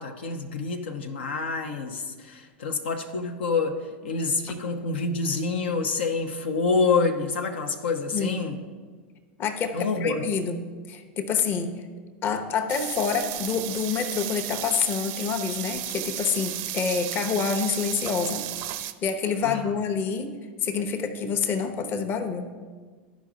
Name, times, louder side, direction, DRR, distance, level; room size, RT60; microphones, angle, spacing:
voice 1, 0.0-8.6 9.7-10.2 19.4-19.7, left 4 dB, 75° left, 3 dB, 0.7 m, -27 dB
voice 2, 8.1-8.4 9.4-11.7 12.2-18.4 18.8-20.3 20.6-22.5, left 6 dB, 35° left, 6 dB, 0.9 m, -27 dB
sound 1, 12.7-18.9, right 13 dB, 55° right, 0.5 m, -34 dB
13.0 x 5.1 x 3.9 m, 1.5 s
hypercardioid pair, 95°, 6 cm